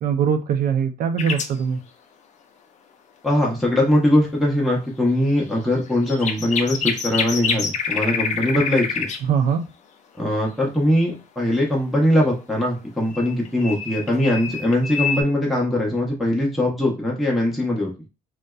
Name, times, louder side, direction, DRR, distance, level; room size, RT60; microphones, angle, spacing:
voice 1, 0.0-1.8 9.2-9.6, right 7 dB, 60° right, 7 dB, 0.5 m, -21 dB
sound 1, 1.2-1.6 5.7-9.2 13.1-15.2, left 6 dB, 45° left, 0.4 m, -26 dB
voice 2, 3.2-9.1 10.2-17.9, left 1 dB, ahead, -3 dB, 0.6 m, -21 dB
2.6 x 2.1 x 2.3 m, 0.29 s
cardioid pair, 110°, 17 cm